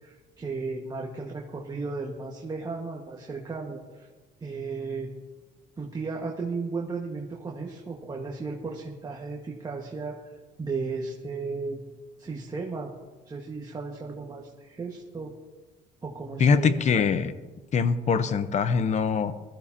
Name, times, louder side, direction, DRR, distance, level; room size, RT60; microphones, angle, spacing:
voice 1, 0.0-4.1 4.4-5.1 5.8-10.2 10.6-11.8 12.2-12.9 13.2-15.3 16.0-16.8, right 4 dB, 25° right, -1 dB, 1.6 m, -35 dB
voice 2, 16.4-17.3 17.7-19.3, left 5 dB, 45° left, 12 dB, 0.8 m, -23 dB
20.5 x 13.5 x 2.8 m, 1.3 s
cardioid pair, 110°, 17 cm